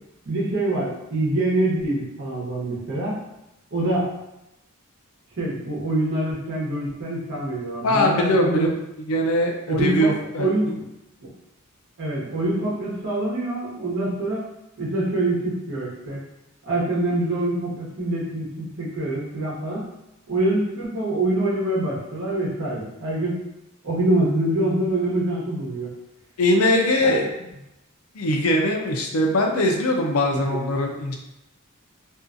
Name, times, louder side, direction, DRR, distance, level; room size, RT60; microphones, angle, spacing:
voice 1, 0.3-3.2 3.7-4.1 5.4-8.7 9.7-10.8 11.2-11.3 12.0-14.4 14.8-16.2 16.6-19.8 20.3-23.4 23.8-25.9 27.0-27.3 30.3-30.9, right 1 dB, 60° right, -6 dB, 1.0 m, -25 dB
voice 2, 7.8-8.7 9.1-10.5 26.4-27.3 28.1-31.2, left 1 dB, 80° left, 2 dB, 0.5 m, -21 dB
2.6 x 2.3 x 2.5 m, 0.90 s
head